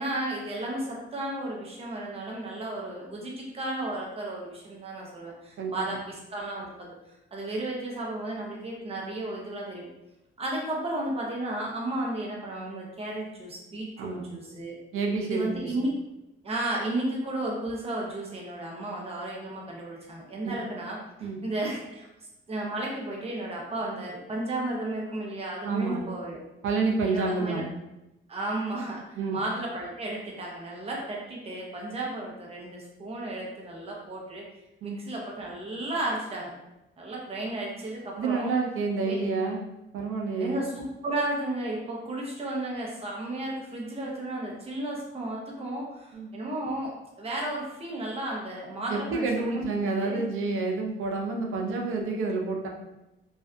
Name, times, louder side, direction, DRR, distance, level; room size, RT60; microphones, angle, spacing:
voice 1, 0.0-6.9 7.3-9.9 10.4-14.8 15.2-15.9 16.4-22.1 22.5-26.4 27.0-27.6 28.3-34.4 34.8-36.5 37.0-38.5 39.0-39.2 40.4-50.2, right 1 dB, 30° right, -2 dB, 0.6 m, -33 dB
voice 2, 14.0-14.3 14.9-15.7 20.4-20.6 21.2-21.4 25.6-26.0 26.6-27.7 29.2-29.4 34.8-35.0 38.2-39.6 39.9-40.6 46.1-46.3 48.9-52.7, right 4 dB, 80° right, 1 dB, 0.5 m, -29 dB
2.5 x 2.4 x 2.2 m, 0.94 s
wide cardioid pair, 150°, 21 cm